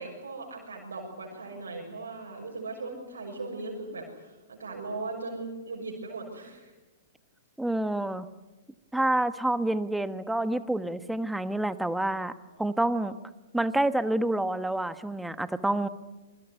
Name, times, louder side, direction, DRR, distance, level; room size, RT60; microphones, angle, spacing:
voice 1, 0.0-6.7 12.6-12.8, right 3 dB, 75° right, -2 dB, 6.4 m, -38 dB
voice 2, 7.6-8.3 8.9-12.3 12.6-13.1 13.5-15.9, right 1 dB, 5° right, 13 dB, 1.3 m, -28 dB
27.0 x 24.0 x 8.2 m, 1.1 s
figure-of-eight pair, 110°, 0 cm